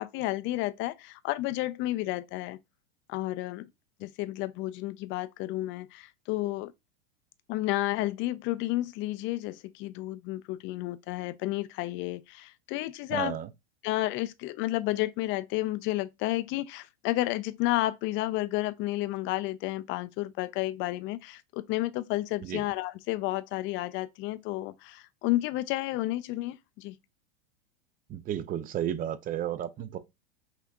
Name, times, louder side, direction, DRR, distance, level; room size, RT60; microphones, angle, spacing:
voice 1, 0.0-2.6 3.1-3.7 4.0-6.7 7.5-13.4 13.8-26.9, left 17 dB, 40° left, 0.4 m, -31 dB
voice 2, 13.1-13.5 22.4-22.6 28.1-30.0, right 10 dB, 25° right, 0.5 m, -32 dB
5.7 x 2.8 x 2.3 m
hypercardioid pair, 110°, 31 cm